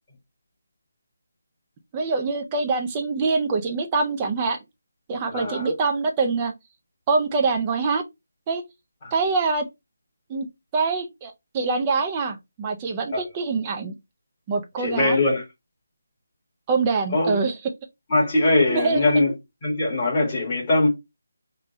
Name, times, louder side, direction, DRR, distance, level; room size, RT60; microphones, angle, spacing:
voice 1, 1.9-4.6 5.1-6.5 7.1-8.0 8.5-8.6 9.1-9.7 10.3-10.5 10.7-13.9 14.5-15.2 16.7-17.6 18.7-19.0, right 4 dB, 15° right, 0.4 m, -24 dB
voice 2, 5.3-5.7 9.0-9.1 13.1-13.2 14.8-15.4 17.1-17.4 18.1-19.3 19.6-20.9, left 2 dB, 15° left, 1.3 m, -21 dB
3.4 x 2.2 x 3.8 m
hypercardioid pair, 180°, 0 cm